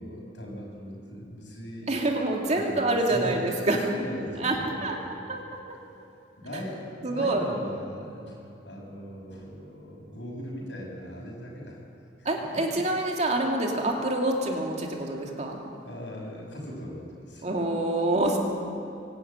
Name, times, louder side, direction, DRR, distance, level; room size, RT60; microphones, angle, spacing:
voice 1, 0.0-1.9 2.5-5.4 6.4-11.8 12.2-12.3 12.5-12.6 15.7-17.5, equal, 80° left, -2 dB, 6.7 m, -39 dB
voice 2, 1.9-3.8 4.4-4.6 4.8-5.0 5.3-5.4 7.0-7.5 12.2-15.6 17.4-18.4, right 2 dB, 40° right, 0 dB, 2.6 m, -26 dB
23.5 x 12.5 x 9.0 m, 2.8 s
head